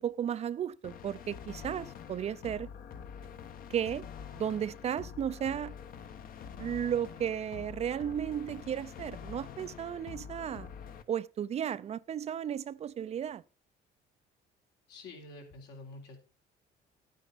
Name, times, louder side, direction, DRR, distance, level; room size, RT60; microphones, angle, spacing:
voice 1, 0.0-2.7 3.7-4.1 4.3-5.8 6.6-10.7 11.1-13.4, right 9 dB, 40° right, 0.4 m, -34 dB
sound 1, 0.8-11.0, left 7 dB, 60° left, 1.0 m, -46 dB
voice 2, 14.9-16.2, left 2 dB, 80° left, 3.8 m, -48 dB
11.5 x 9.2 x 4.1 m
cardioid pair, 110°, 17 cm